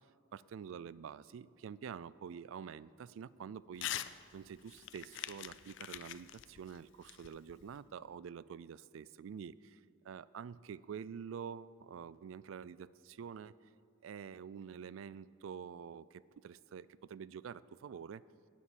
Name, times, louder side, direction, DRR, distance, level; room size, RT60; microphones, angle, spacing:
voice 1, 0.3-13.5 14.0-18.2, right 7 dB, 70° right, 19 dB, 0.3 m, -47 dB
Crumpling crinkling / Tearing, 3.7-4.1 4.5-7.8, left 12 dB, 60° left, 0.4 m, -44 dB
11.0 x 7.4 x 8.6 m, 2.6 s
head